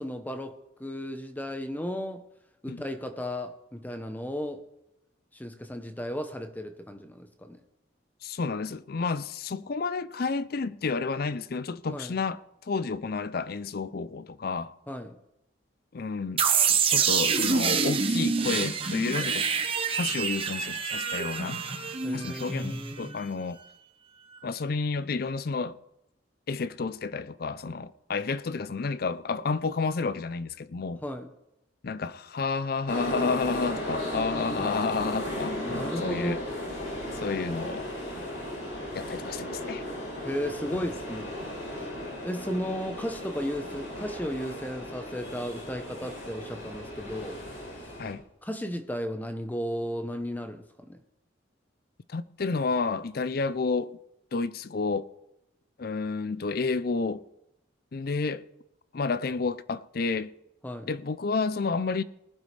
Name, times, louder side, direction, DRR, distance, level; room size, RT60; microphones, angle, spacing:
voice 1, 0.0-2.2 2.6-4.6 5.3-7.6 11.9-12.1 14.9-15.2 22.0-23.3 31.0-31.3 35.6-36.4 40.2-41.5 42.2-47.4 48.4-51.0 60.6-60.9, equal, 10° left, 0.8 m, -35 dB
voice 2, 8.2-14.7 15.9-16.4 16.7-19.5 20.0-21.6 22.1-23.6 24.4-25.8 26.5-31.0 31.8-36.4 37.1-37.9 38.9-39.8 40.7-40.9 48.0-48.2 52.1-54.0 54.3-55.1 55.8-57.2 57.9-58.4 58.9-60.3 60.9-62.0, left 4 dB, 50° left, 0.5 m, -30 dB
sound 1, 16.4-23.2, right 5 dB, 30° right, 1.0 m, -27 dB
sound 2, 32.9-48.1, left 1 dB, 70° left, 4.0 m, -36 dB
19.5 x 11.5 x 3.3 m
head